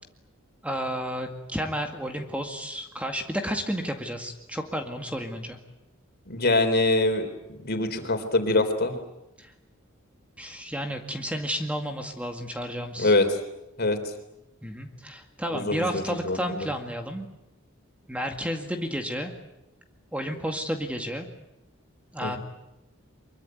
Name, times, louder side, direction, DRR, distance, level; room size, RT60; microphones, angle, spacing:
voice 1, 0.6-5.6 9.4-9.5 10.4-13.1 14.6-17.3 18.1-19.3 20.1-21.3 22.1-22.4, equal, 5° right, 4 dB, 2.1 m, -31 dB
voice 2, 6.3-7.3 7.6-9.0 13.0-13.4 13.8-14.0 15.5-16.7 22.2-22.4, left 2 dB, 50° left, 6 dB, 3.8 m, -24 dB
24.5 x 23.0 x 9.2 m, 0.92 s
head